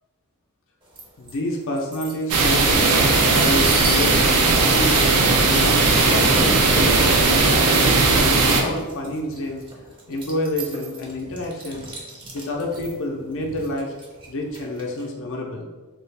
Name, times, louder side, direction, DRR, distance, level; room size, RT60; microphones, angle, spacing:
sound 1, 1.0-1.4 1.8-15.0, right 2 dB, 20° right, 0.6 m, -33 dB
voice 1, 1.2-5.1 5.4-9.6 10.1-11.9 12.3-13.9 14.3-15.7, left 1 dB, 60° left, 0 dB, 0.5 m, -29 dB
sound 2, 2.3-8.6, right 3 dB, 80° right, 0.5 m, -17 dB
3.2 x 2.3 x 3.2 m, 1.2 s
head